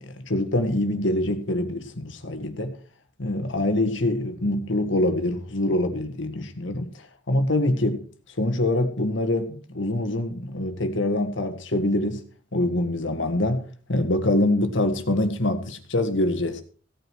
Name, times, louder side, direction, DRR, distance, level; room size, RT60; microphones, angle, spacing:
voice 1, 0.0-2.7 3.2-8.0 8.3-12.2 12.5-16.6, left 1 dB, 75° left, 1.8 m, -25 dB
16.5 x 9.0 x 4.7 m
head